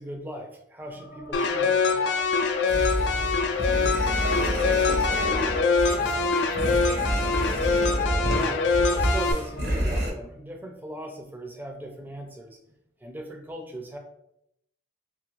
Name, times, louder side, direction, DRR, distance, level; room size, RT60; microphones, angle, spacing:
voice 1, 0.0-2.2 8.3-12.6 13.0-14.0, right 1 dB, 10° right, 2 dB, 0.4 m, -39 dB
sound 1, 0.9-9.9, equal, 60° left, 0.7 m, -44 dB
sound 2, 1.3-9.3, left 4 dB, 80° left, 0.4 m, -24 dB
sound 3, 2.7-10.1, equal, 65° right, 0.7 m, -28 dB
voice 2, 4.1-5.5 5.8-7.1, right 4 dB, 85° right, 9 dB, 0.3 m, -39 dB
2.6 x 2.5 x 3.0 m, 0.76 s
head